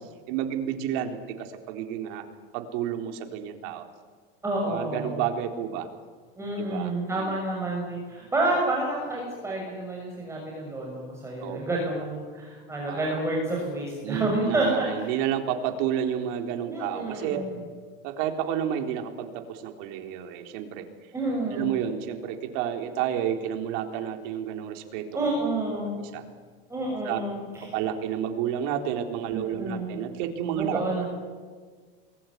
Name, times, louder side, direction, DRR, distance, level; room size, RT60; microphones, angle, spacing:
voice 1, 0.3-2.2 2.5-3.8 4.6-5.9 6.6-7.4 11.4-11.8 12.8-13.1 14.0-17.4 18.0-20.9 21.5-25.0 25.8-26.2 27.0-27.2 27.7-31.1, right 9 dB, 55° right, 5 dB, 3.9 m, -30 dB
voice 2, 4.4-5.2 6.4-15.1 16.7-17.5 21.1-21.7 25.1-26.0 26.7-27.8 29.3-30.0 30.6-31.1, right 2 dB, 10° right, -2 dB, 6.4 m, -29 dB
27.5 x 21.5 x 9.7 m, 1.5 s
supercardioid pair, 145°, 30 cm